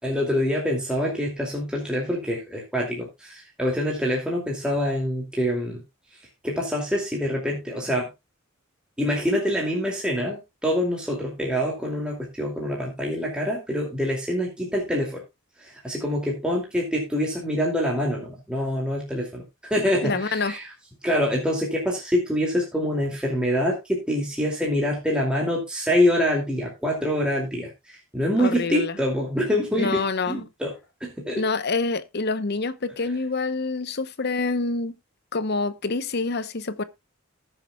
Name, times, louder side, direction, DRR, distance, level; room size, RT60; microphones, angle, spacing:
voice 1, 0.0-5.8 6.1-8.1 9.0-15.2 15.6-20.7 21.0-30.7 31.0-31.4, equal, 5° right, 2.5 m, -25 dB
voice 2, 20.0-20.5 28.4-28.9 29.8-30.4 31.4-34.9 35.3-36.8, left 3 dB, 55° left, 0.9 m, -26 dB
19.5 x 6.7 x 2.3 m
head